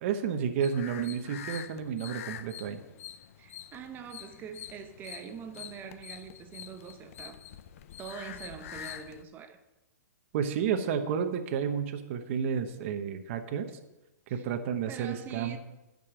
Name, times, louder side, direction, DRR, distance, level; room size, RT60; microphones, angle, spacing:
voice 1, 0.0-2.8 10.3-13.7 14.3-15.6, right 7 dB, 45° right, 1.0 m, -31 dB
sound 1, 0.6-9.2, left 10 dB, 50° left, 0.6 m, -45 dB
voice 2, 3.4-7.4 8.0-9.6 14.3-14.5 14.9-15.6, right 7 dB, 20° right, 0.8 m, -44 dB
11.0 x 5.4 x 7.6 m
hypercardioid pair, 145°, 10 cm